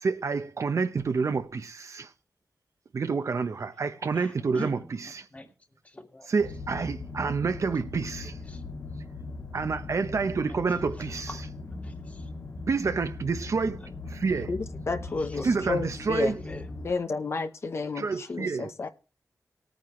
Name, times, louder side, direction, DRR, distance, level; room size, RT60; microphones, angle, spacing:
voice 1, 0.0-2.1 2.9-5.3 6.3-8.4 9.5-11.4 12.7-14.5 15.4-16.4 18.0-18.7, right 4 dB, 65° right, 0.9 m, -28 dB
voice 2, 4.1-4.7 5.0-5.5 5.8-6.3 7.2-7.3 8.2-8.6 10.2-11.5 11.8-12.3 13.8-13.9 15.1-15.5 16.1-16.2 16.5-16.6 18.2-18.3, left 1 dB, 25° left, 2.0 m, -43 dB
sound 1, 6.4-16.9, left 3 dB, 70° left, 2.4 m, -39 dB
voice 3, 14.5-16.3 16.8-18.9, left 4 dB, 55° left, 0.9 m, -31 dB
19.5 x 9.1 x 3.2 m
wide cardioid pair, 125°, 6 cm